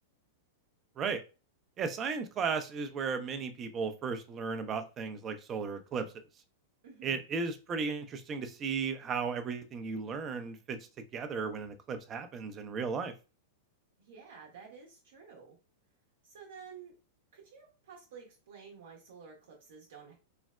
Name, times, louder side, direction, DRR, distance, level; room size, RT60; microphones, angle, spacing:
voice 1, 1.8-6.1 7.0-10.8 11.1-13.1, right 5 dB, 30° right, 9 dB, 0.4 m, -35 dB
voice 2, 6.8-7.4 14.0-15.6 16.2-16.9 17.3-20.1, right 6 dB, 65° right, -1 dB, 0.7 m, -51 dB
3.1 x 2.0 x 2.3 m, 0.32 s
figure-of-eight pair, 100°, 0 cm